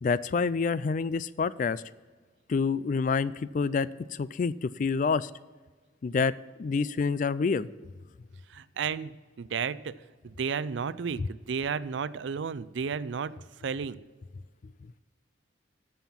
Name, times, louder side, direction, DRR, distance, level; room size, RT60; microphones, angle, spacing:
voice 1, 0.0-1.8 2.5-5.3 6.0-6.3 6.6-7.7 11.2-11.3 14.8-14.9, left 5 dB, 45° left, 18 dB, 0.3 m, -27 dB
voice 2, 8.5-9.1 9.4-10.0 10.2-13.3 13.6-14.0, right 6 dB, 80° right, 17 dB, 0.4 m, -32 dB
14.0 x 5.7 x 5.9 m, 1.4 s
head